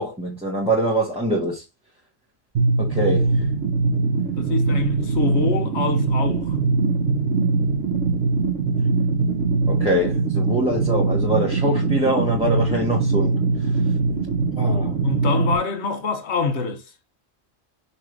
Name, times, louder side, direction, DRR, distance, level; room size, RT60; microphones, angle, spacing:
voice 1, 0.0-1.6 2.8-3.3 9.7-13.4 14.6-15.0, right 1 dB, 5° right, 1.4 m, -23 dB
sound 1, 2.5-15.5, right 4 dB, 60° right, 1.4 m, -22 dB
voice 2, 4.3-6.6 15.0-16.8, left 4 dB, 55° left, 1.2 m, -25 dB
5.9 x 3.4 x 4.7 m
omnidirectional pair, 1.4 m